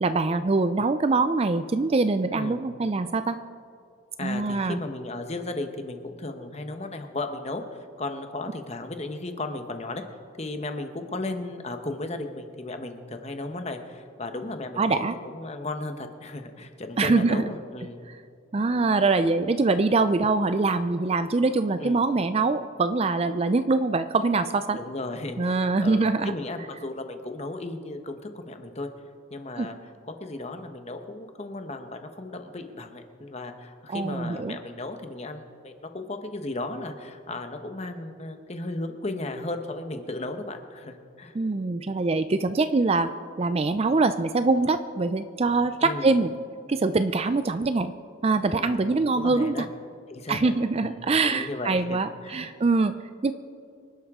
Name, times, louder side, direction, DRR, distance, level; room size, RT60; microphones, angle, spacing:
voice 1, 0.0-3.4 4.2-4.8 14.8-15.1 17.0-17.4 18.5-24.8 25.4-26.3 29.6-29.7 33.9-34.6 41.3-43.1 43.4-46.3 46.7-47.9 48.2-49.7 50.3-53.0 53.2-53.3, right 3 dB, 30° right, 11 dB, 0.4 m, -24 dB
voice 2, 4.2-7.6 8.0-10.0 10.4-15.0 15.3-18.0 21.8-22.0 24.8-28.9 29.3-29.8 30.1-41.4 45.8-46.1 48.6-49.7 50.1-52.5, left 2 dB, 30° left, 6 dB, 1.0 m, -35 dB
25.0 x 11.5 x 3.7 m, 2.4 s
head